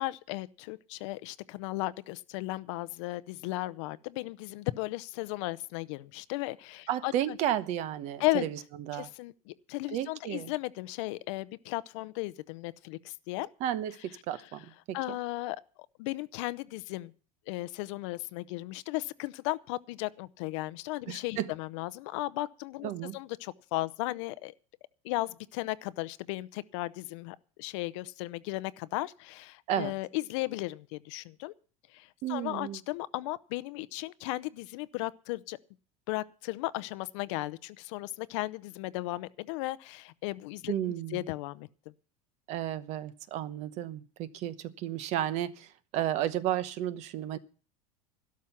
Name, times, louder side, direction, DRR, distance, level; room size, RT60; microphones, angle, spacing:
voice 1, 0.0-7.4 8.2-8.4 8.9-13.5 14.9-15.6 16.0-17.1 17.5-24.5 25.0-31.5 31.9-35.6 36.1-41.7, left 19 dB, 60° left, 0.7 m, -35 dB
voice 2, 6.9-9.1 9.9-10.5 13.6-15.2 21.1-21.5 22.8-23.2 29.7-29.9 32.2-32.8 40.7-41.2 42.5-47.4, right 11 dB, 40° right, 1.0 m, -33 dB
13.0 x 12.5 x 5.8 m
supercardioid pair, 165°, 17 cm